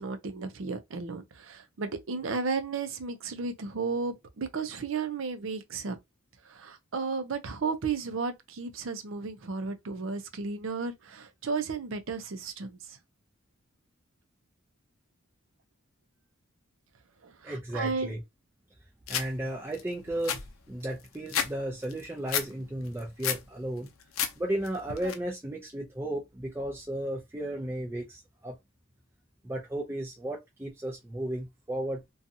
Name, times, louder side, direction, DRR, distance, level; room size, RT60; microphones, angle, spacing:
voice 1, 0.0-6.0 6.4-13.0 17.2-18.1, right 4 dB, 70° right, 0.5 m, -34 dB
voice 2, 17.4-18.2 19.1-23.9 24.4-28.5 29.4-32.0, right 1 dB, 10° right, 0.4 m, -34 dB
sound 1, 19.1-19.3 19.7-19.8 20.1-21.5 21.8-22.5 22.9-23.4 23.9-24.3 24.6-25.1, left 8 dB, 80° left, 0.5 m, -31 dB
2.6 x 2.3 x 2.6 m
head